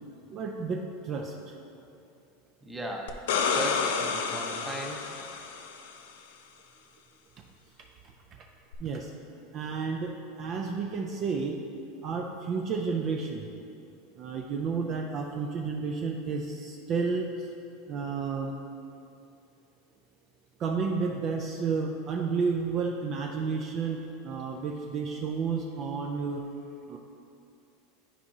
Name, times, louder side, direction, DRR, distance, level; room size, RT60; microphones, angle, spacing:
voice 1, 0.3-1.5 8.8-9.1 9.5-11.6 12.0-13.5 14.2-17.5 17.9-18.5 20.6-26.4 26.9-27.0, right 5 dB, 35° right, 2 dB, 0.4 m, -31 dB
voice 2, 2.6-5.2, right 1 dB, 5° right, 0 dB, 0.8 m, -37 dB
sound 1, 3.1-5.9 8.7-8.8, left 5 dB, 85° left, 0.5 m, -30 dB
10.0 x 4.6 x 2.7 m, 2.7 s
supercardioid pair, 140°, 0 cm